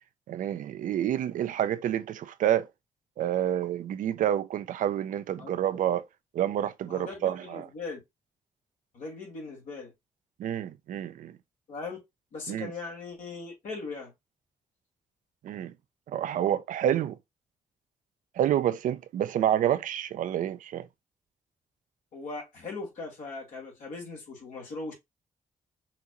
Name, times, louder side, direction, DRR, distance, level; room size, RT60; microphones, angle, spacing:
voice 1, 0.3-2.7 3.2-6.0 6.3-7.7 10.4-11.4 12.5-12.7 15.4-15.7 16.1-17.2 18.4-20.9, right 11 dB, 75° right, 0.5 m, -28 dB
voice 2, 6.9-8.0 8.9-9.9 11.7-12.0 12.3-14.1 22.1-24.9, left 3 dB, 80° left, 2.2 m, -39 dB
5.8 x 2.6 x 3.0 m
supercardioid pair, 50°, 13 cm